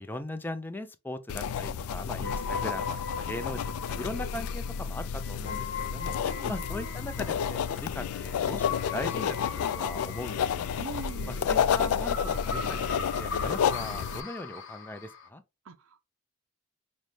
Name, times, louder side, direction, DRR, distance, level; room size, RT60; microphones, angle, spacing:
voice 1, 0.0-6.1 6.5-10.7 11.2-15.4, left 1 dB, 10° left, 0.4 m, -39 dB
sound 1, 1.3-14.2, left 7 dB, 90° left, 0.3 m, -31 dB
sound 2, 2.2-15.3, left 5 dB, 60° left, 0.7 m, -39 dB
sound 3, 6.2-13.0, left 1 dB, 10° right, 0.8 m, -54 dB
voice 2, 6.2-6.7 10.8-11.5 15.6-16.0, right 5 dB, 70° right, 0.5 m, -43 dB
5.3 x 2.1 x 3.1 m
head